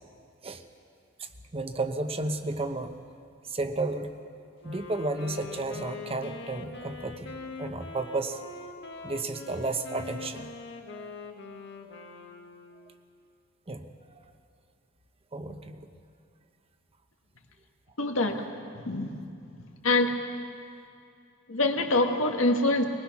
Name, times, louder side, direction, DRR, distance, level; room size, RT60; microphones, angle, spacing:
voice 1, 1.2-2.9 3.5-4.1 4.6-8.4 9.0-10.5 10.9-11.1 13.7-13.9 15.3-15.9, right 2 dB, 30° right, 7 dB, 1.0 m, -33 dB
Wind instrument woodwind instrument, 4.6-12.9, left 4 dB, 60° left, 1.6 m, -43 dB
voice 2, 18.0-18.5 18.7-19.2 19.6-20.2 21.5-22.8, left 2 dB, 80° left, 3 dB, 1.7 m, -25 dB
21.5 x 20.0 x 6.0 m, 2.5 s
head